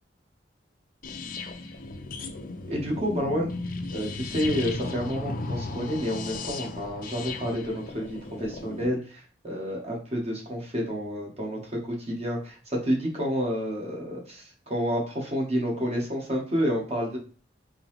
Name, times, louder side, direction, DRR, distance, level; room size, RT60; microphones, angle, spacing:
sound 1, 1.0-8.9, left 3 dB, 50° left, 0.5 m, -36 dB
voice 1, 2.7-3.5 3.9-11.7 12.0-17.2, equal, 35° right, -1 dB, 1.1 m, -29 dB
3.8 x 2.8 x 3.0 m, 0.40 s
head